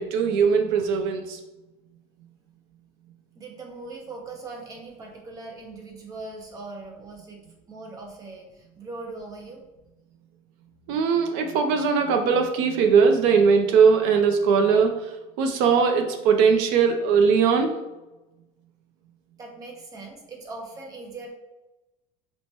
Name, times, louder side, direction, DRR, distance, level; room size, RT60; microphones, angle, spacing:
voice 1, 0.0-1.4 10.9-17.7, right 6 dB, 70° right, 5 dB, 0.4 m, -20 dB
voice 2, 3.4-7.4 7.7-9.6 10.9-11.0 19.4-21.3, right 3 dB, 20° right, 0 dB, 0.6 m, -40 dB
4.5 x 2.1 x 2.8 m, 1.0 s
cardioid pair, 160°, 16 cm